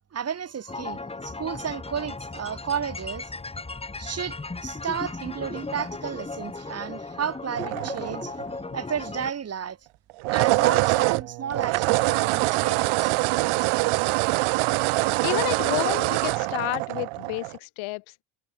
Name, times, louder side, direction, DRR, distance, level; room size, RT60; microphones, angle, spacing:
voice 1, 0.1-3.3 4.0-8.4 8.7-9.8 10.3-13.1, right 7 dB, 30° right, 4.6 m, -32 dB
sound 1, 0.7-9.3, left 3 dB, 10° left, 4.4 m, -36 dB
sound 2, 7.6-8.6 10.1-17.6, right 23 dB, 75° right, 5.8 m, -24 dB
voice 2, 15.2-18.0, left 22 dB, 75° left, 4.9 m, -30 dB
cardioid pair, 145°, 48 cm